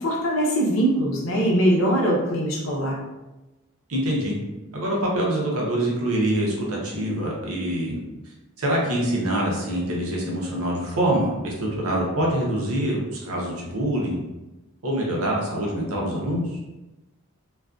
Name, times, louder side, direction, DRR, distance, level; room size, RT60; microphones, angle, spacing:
voice 1, 0.0-3.0, right 1 dB, 70° left, -2 dB, 0.6 m, -22 dB
voice 2, 3.9-4.4 4.7-8.0 8.6-14.2 14.8-16.6, right 1 dB, 75° right, -2 dB, 0.7 m, -25 dB
2.4 x 2.3 x 2.3 m, 1.0 s
head